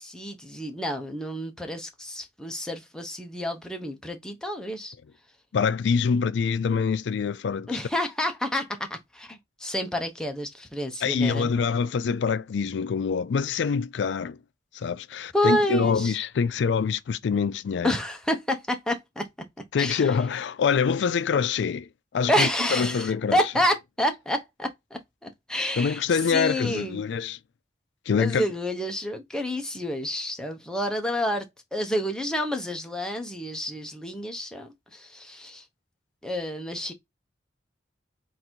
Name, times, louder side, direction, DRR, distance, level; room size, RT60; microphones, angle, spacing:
voice 1, 0.0-4.9 7.7-11.5 15.3-16.2 17.8-19.3 19.8-20.1 22.3-27.0 28.2-31.5 31.7-35.6 36.2-36.9, equal, 5° left, 0.7 m, -29 dB
voice 2, 5.5-7.7 11.0-14.4 14.7-17.9 19.7-23.4 25.8-27.4 28.1-28.4, left 6 dB, 70° left, 0.4 m, -25 dB
3.9 x 2.6 x 4.4 m
head